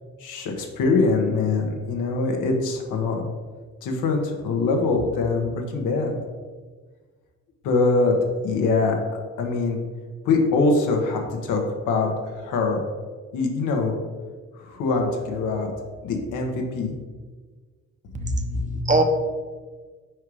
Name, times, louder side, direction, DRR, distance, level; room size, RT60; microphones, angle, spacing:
voice 1, 0.2-3.2 3.8-6.2 7.6-8.2 8.4-9.0 9.4-9.8 10.2-12.8 13.3-14.0 14.5-15.7 16.0-16.9, left 3 dB, 90° left, 2 dB, 1.1 m, -23 dB
voice 2, 18.1-19.0, right 2 dB, 25° right, 4 dB, 0.8 m, -23 dB
4.8 x 4.5 x 4.8 m, 1.4 s
cardioid pair, 90°, 30 cm